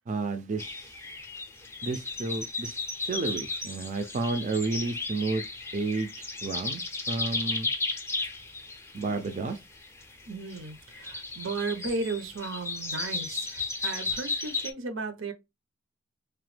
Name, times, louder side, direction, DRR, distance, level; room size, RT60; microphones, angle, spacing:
voice 1, 0.1-0.9 1.8-2.7 3.1-5.4 5.7-7.7 8.9-9.6, right 3 dB, 40° right, 0.4 m, -31 dB
sound 1, 0.6-14.7, left 3 dB, 15° left, 0.5 m, -35 dB
voice 2, 10.3-15.3, right 3 dB, 85° right, 0.7 m, -35 dB
2.9 x 2.1 x 3.2 m
head